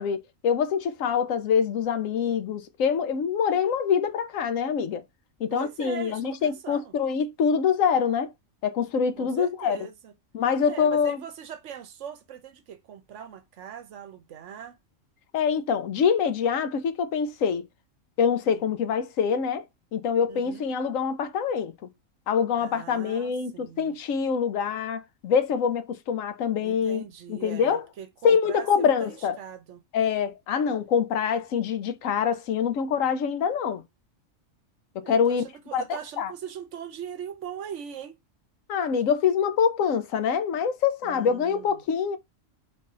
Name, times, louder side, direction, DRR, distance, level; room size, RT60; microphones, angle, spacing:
voice 1, 0.0-5.0 5.4-8.3 8.6-9.8 10.3-11.2 15.3-17.7 18.2-19.6 19.9-21.7 22.3-27.0 27.3-27.8 28.2-29.4 29.9-33.8 35.1-35.4 35.7-36.3 38.7-42.2, left 7 dB, 85° left, 1.1 m, -25 dB
voice 2, 5.5-6.9 9.2-10.1 10.7-14.8 18.5-18.7 20.3-20.7 22.6-24.0 26.6-29.8 35.0-38.2 41.0-41.8, right 9 dB, 70° right, 1.0 m, -41 dB
3.8 x 2.6 x 4.1 m
omnidirectional pair, 1.3 m